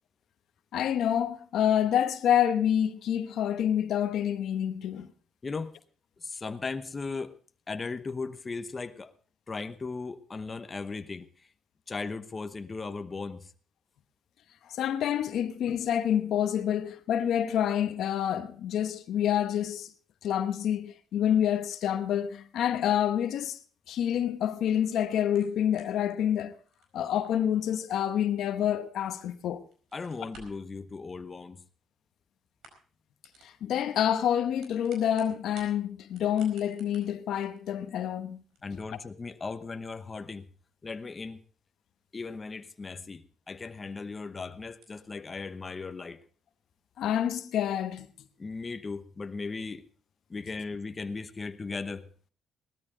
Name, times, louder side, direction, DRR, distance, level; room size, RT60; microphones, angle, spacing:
voice 1, 0.7-5.1 14.7-19.9 20.2-23.6 23.9-26.5 26.9-29.6 33.4-38.4 47.0-48.1, left 10 dB, 75° left, 1.0 m, -27 dB
voice 2, 5.4-5.7 6.2-7.4 7.7-9.1 9.5-11.5 11.9-13.5 29.9-31.6 38.6-40.5 40.8-41.4 42.1-46.2 48.4-49.8 50.3-52.1, left 4 dB, 30° left, 1.0 m, -37 dB
sound 1, 25.3-29.3 29.6-30.7 31.7-32.2 32.5-33.0 33.2-33.6 34.4-35.7 36.1-43.1 43.4-43.5 44.0-44.1 44.3-44.4 44.7-45.0, right 4 dB, 80° right, 4.7 m, -57 dB
18.5 x 13.0 x 3.8 m
cardioid pair, 90°, 0 cm